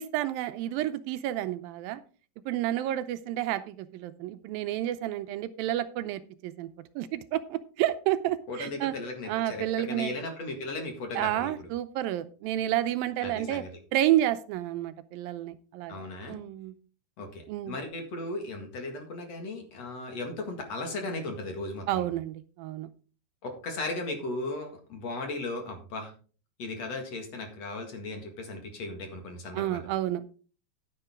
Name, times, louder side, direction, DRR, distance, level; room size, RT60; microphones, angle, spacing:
voice 1, 0.0-2.0 2.5-6.7 7.0-8.9 9.3-10.1 11.2-13.6 13.9-16.7 17.5-17.8 21.9-22.9 29.5-30.2, right 13 dB, 80° right, 12 dB, 2.2 m, -30 dB
voice 2, 8.5-11.7 13.2-13.7 15.9-16.4 17.2-22.1 23.4-26.1 26.6-29.9, left 2 dB, 50° left, 4 dB, 2.6 m, -36 dB
10.5 x 9.8 x 3.6 m, 0.38 s
omnidirectional pair, 4.4 m